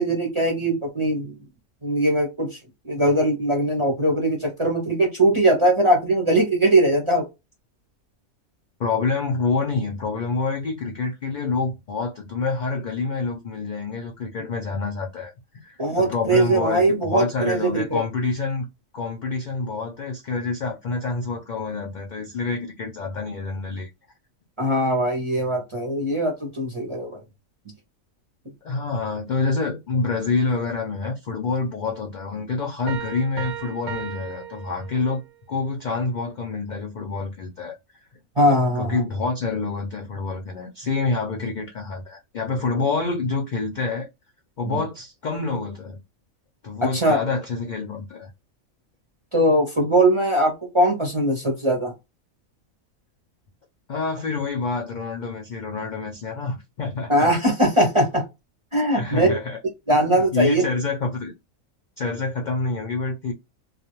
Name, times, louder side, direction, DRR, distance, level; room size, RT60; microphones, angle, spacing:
voice 1, 0.0-1.4 1.8-2.6 2.8-7.3 15.8-18.0 24.6-27.2 38.4-39.0 46.8-47.2 49.3-51.9 57.1-58.2 58.7-59.4 59.9-60.6, right 1 dB, 35° right, 0.5 m, -20 dB
voice 2, 8.8-15.3 15.6-18.6 18.9-23.9 28.6-35.2 35.5-37.8 38.8-44.1 44.6-46.0 46.6-48.3 53.9-57.3 58.9-59.6 59.9-61.3 62.0-63.3, left 4 dB, 70° left, 0.4 m, -27 dB
Piano, 32.9-35.4, right 7 dB, 65° right, 0.8 m, -35 dB
2.4 x 2.2 x 2.9 m
omnidirectional pair, 1.4 m